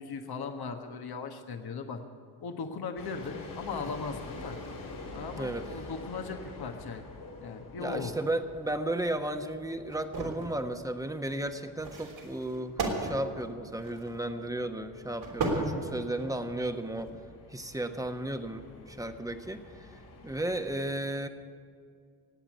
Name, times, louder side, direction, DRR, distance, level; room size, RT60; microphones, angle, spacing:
voice 1, 0.0-2.0 2.4-4.6 5.1-7.0 7.4-8.1, left 5 dB, 50° left, 5 dB, 1.4 m, -38 dB
sound 1, 3.0-20.8, left 2 dB, 80° left, 3.5 m, -48 dB
voice 2, 7.8-17.1 17.5-21.3, right 1 dB, 5° right, 7 dB, 1.4 m, -34 dB
sound 2, 9.9-10.5 11.8-14.3 15.2-16.4 16.9-17.1, right 3 dB, 70° right, 3.6 m, -34 dB
18.5 x 8.8 x 8.6 m, 2.2 s
hypercardioid pair, 40°, 48 cm